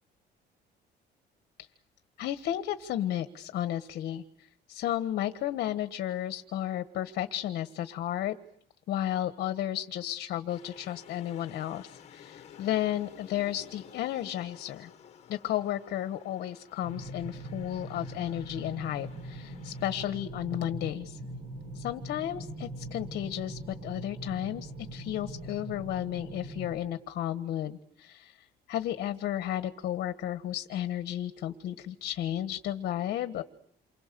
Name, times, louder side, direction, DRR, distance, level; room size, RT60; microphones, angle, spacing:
voice 1, 2.2-8.4 8.9-14.9 15.3-21.2 21.7-33.4, left 12 dB, 60° left, 10 dB, 1.4 m, -33 dB
sound 1, 10.5-20.2, left 9 dB, 35° left, 2.1 m, -53 dB
sound 2, 16.8-26.7, right 1 dB, 40° right, 5.4 m, -42 dB
28.5 x 25.0 x 6.9 m, 0.69 s
cardioid pair, 165°, 18 cm